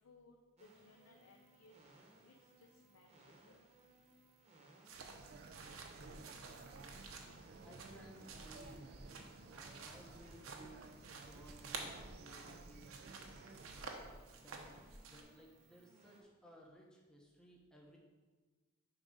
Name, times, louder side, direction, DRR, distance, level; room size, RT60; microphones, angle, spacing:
voice 1, 0.0-1.7 2.2-3.6, left 3 dB, 80° left, 2 dB, 0.6 m, -65 dB
sound 1, 0.6-16.2, right 2 dB, 30° right, 1.0 m, -66 dB
sound 2, 4.9-14.0, right 4 dB, 50° right, 0.3 m, -56 dB
sound 3, 4.9-15.2, right 4 dB, 75° right, 0.8 m, -52 dB
voice 2, 7.6-10.9 11.2-13.5 14.3-14.7 15.0-18.0, equal, 5° left, -1 dB, 0.8 m, -60 dB
7.0 x 3.8 x 5.2 m, 1.3 s
head